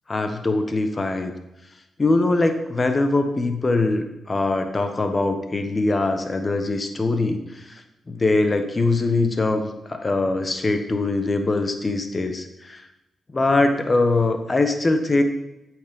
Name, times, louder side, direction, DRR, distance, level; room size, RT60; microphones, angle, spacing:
voice 1, 0.1-1.3 2.0-7.4 8.1-12.8 13.3-15.2, left 2 dB, 35° left, 7 dB, 1.3 m, -22 dB
8.7 x 6.3 x 5.4 m, 0.95 s
cardioid pair, 75°, 0 cm